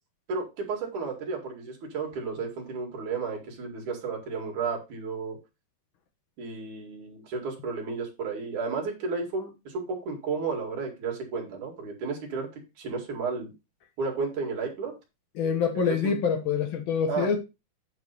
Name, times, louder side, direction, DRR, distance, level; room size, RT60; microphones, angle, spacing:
voice 1, 0.3-5.4 6.4-12.5 12.8-13.5 14.0-14.9 15.7-16.2 17.1-17.3, right 4 dB, 60° right, 3.5 m, -32 dB
voice 2, 15.4-17.4, left 6 dB, 80° left, 1.1 m, -26 dB
9.3 x 3.5 x 6.7 m
omnidirectional pair, 4.2 m